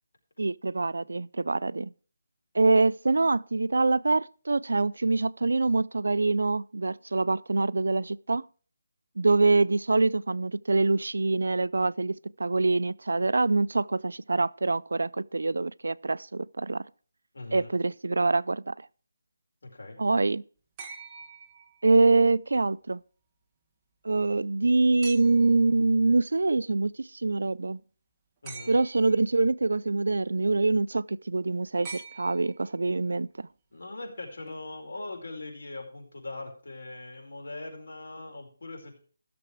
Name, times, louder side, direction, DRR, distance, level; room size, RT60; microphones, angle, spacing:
voice 1, 0.4-1.9 2.5-8.4 9.2-16.8 17.5-18.7 20.0-20.4 21.8-23.0 24.0-27.8 28.7-33.5, right 3 dB, 85° right, 0.4 m, -25 dB
voice 2, 17.3-17.7 19.6-20.0 28.4-28.7 33.7-39.0, left 2 dB, 75° left, 4.6 m, -41 dB
sound 1, 20.8-22.2 25.0-25.6 28.4-29.2 31.8-32.9 34.5-34.6, right 4 dB, 15° right, 1.0 m, -45 dB
15.0 x 6.9 x 4.7 m
hypercardioid pair, 175°, 0 cm